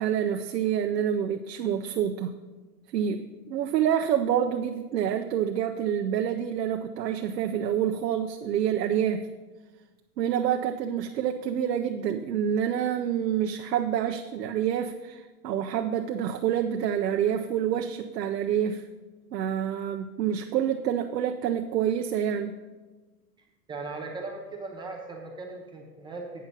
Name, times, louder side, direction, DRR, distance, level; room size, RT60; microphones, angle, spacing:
voice 1, 0.0-2.3 2.9-9.3 10.2-18.9 19.3-22.6, right 9 dB, 85° right, 5 dB, 0.7 m, -27 dB
voice 2, 23.7-26.5, right 3 dB, 10° right, 0 dB, 0.5 m, -38 dB
8.6 x 5.8 x 5.3 m, 1.3 s
hypercardioid pair, 130°, 48 cm